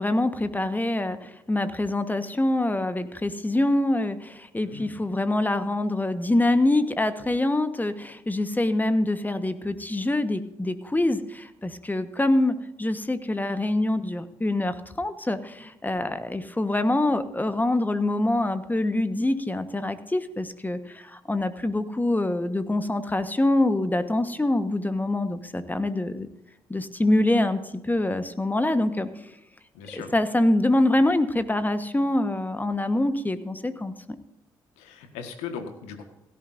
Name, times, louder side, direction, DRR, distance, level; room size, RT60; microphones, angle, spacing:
voice 1, 0.0-26.3 26.7-29.1 29.9-34.2, left 1 dB, 15° left, 10 dB, 1.3 m, -25 dB
voice 2, 4.6-5.0 29.7-30.1 34.8-36.0, left 6 dB, 80° left, 7 dB, 1.6 m, -38 dB
17.0 x 13.5 x 2.6 m, 0.90 s
hypercardioid pair, 45°, 11 cm